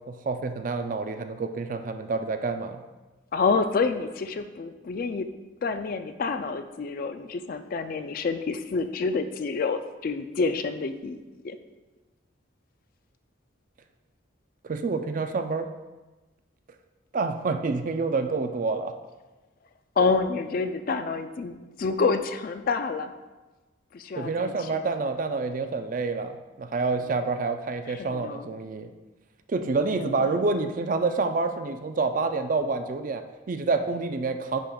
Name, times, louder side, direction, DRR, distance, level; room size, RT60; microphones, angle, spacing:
voice 1, 0.1-2.8 14.6-15.7 17.1-18.9 24.2-26.3 26.6-28.9 29.5-34.6, right 3 dB, 40° right, 8 dB, 0.3 m, -28 dB
voice 2, 3.3-5.3 5.6-11.6 20.0-23.1 23.9-24.8 27.9-28.5 30.0-30.3, left 4 dB, 45° left, 8 dB, 0.3 m, -28 dB
10.5 x 5.0 x 2.3 m, 1.2 s
head